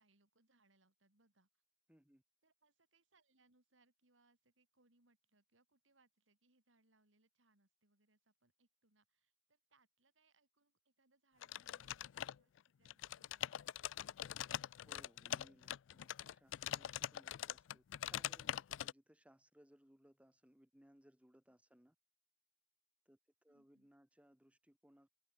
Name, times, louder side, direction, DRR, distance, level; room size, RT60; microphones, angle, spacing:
voice 1, 0.0-1.5 2.4-12.5 12.8-13.8 23.5-23.9, right 2 dB, 80° right, 4.4 m, -77 dB
voice 2, 1.9-2.2 14.8-21.9 23.0-25.3, equal, 5° right, 1.5 m, -68 dB
sound 1, 11.4-12.6 12.9-18.9, left 11 dB, 80° left, 0.4 m, -43 dB
open air
head